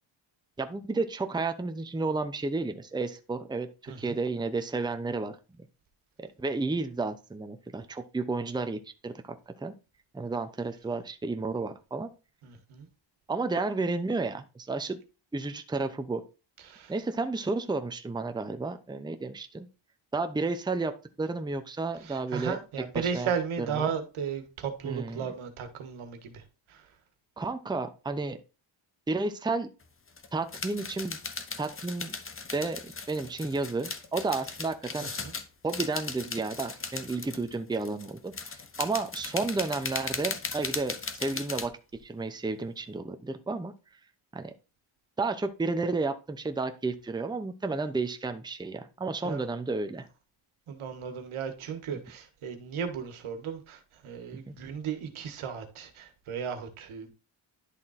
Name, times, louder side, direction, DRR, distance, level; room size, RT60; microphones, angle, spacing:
voice 1, 0.6-5.7 6.2-9.7 10.1-12.1 13.3-15.0 15.3-16.2 16.9-19.7 20.1-22.6 22.9-23.3 23.6-23.9 24.8-25.3 27.4-28.4 29.1-29.7 30.3-31.2 31.6-32.2 32.5-35.1 35.6-41.7 42.0-43.7 44.3-44.5 45.2-50.1 54.5-54.6, right 3 dB, 10° right, 0.7 m, -32 dB
voice 2, 12.4-12.9 16.6-16.9 22.0-26.8 35.0-35.3 49.2-49.5 50.7-57.1, right 7 dB, 85° right, 1.6 m, -35 dB
sound 1, 29.8-29.9 30.1-41.7, left 4 dB, 25° left, 0.9 m, -37 dB
11.0 x 3.7 x 4.2 m
cardioid pair, 100°, 48 cm